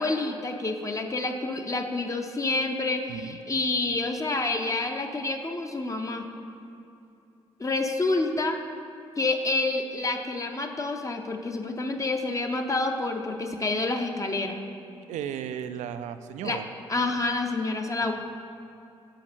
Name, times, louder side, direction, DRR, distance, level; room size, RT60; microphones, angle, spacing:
voice 1, 0.0-6.3 7.6-8.6 9.2-14.6 16.4-16.6 16.9-18.1, left 2 dB, 25° left, 4 dB, 0.6 m, -28 dB
voice 2, 3.1-3.4 15.1-16.7, right 9 dB, 60° right, 11 dB, 0.4 m, -35 dB
6.5 x 5.0 x 4.2 m, 2.7 s
hypercardioid pair, 45°, 14 cm